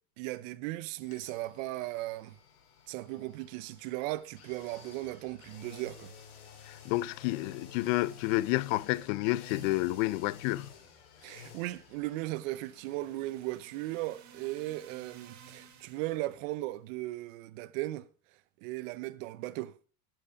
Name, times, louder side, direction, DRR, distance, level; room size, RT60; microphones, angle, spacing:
voice 1, 0.2-2.4 2.9-6.1 11.2-18.1 18.6-19.7, right 17 dB, 60° right, 0.8 m, -37 dB
sound 1, 1.0-16.8 17.1-17.2, left 6 dB, 90° left, 3.6 m, -54 dB
voice 2, 6.7-10.7, left 19 dB, 60° left, 0.5 m, -30 dB
sound 2, 11.5-16.4, right 8 dB, 40° right, 1.8 m, -56 dB
11.0 x 7.9 x 4.8 m
supercardioid pair, 135°, 43 cm